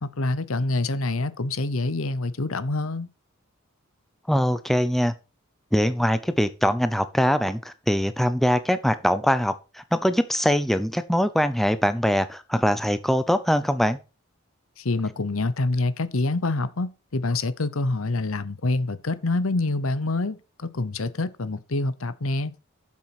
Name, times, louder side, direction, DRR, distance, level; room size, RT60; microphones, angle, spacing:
voice 1, 0.0-3.1 14.8-22.5, left 2 dB, 80° left, 0.9 m, -26 dB
voice 2, 4.3-5.1 5.7-14.0, equal, ahead, 0.7 m, -22 dB
7.6 x 7.4 x 5.9 m
head